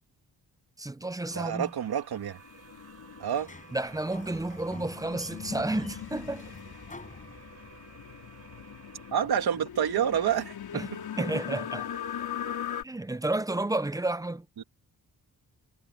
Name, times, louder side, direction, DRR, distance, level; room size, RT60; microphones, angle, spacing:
voice 1, 0.8-1.7 3.7-6.5 10.7-11.9 12.8-14.5, right 2 dB, 10° right, 0.6 m, -31 dB
sound 1, 1.3-9.1, right 4 dB, 45° right, 4.2 m, -53 dB
voice 2, 1.3-2.4 3.2-3.5 9.1-10.8 14.6-14.7, right 9 dB, 85° right, 2.8 m, -28 dB
sound 2, 2.4-12.8, left 9 dB, 80° left, 4.4 m, -40 dB
Sliding door, 3.2-8.0, left 3 dB, 20° left, 6.7 m, -48 dB
wide cardioid pair, 155°, 37 cm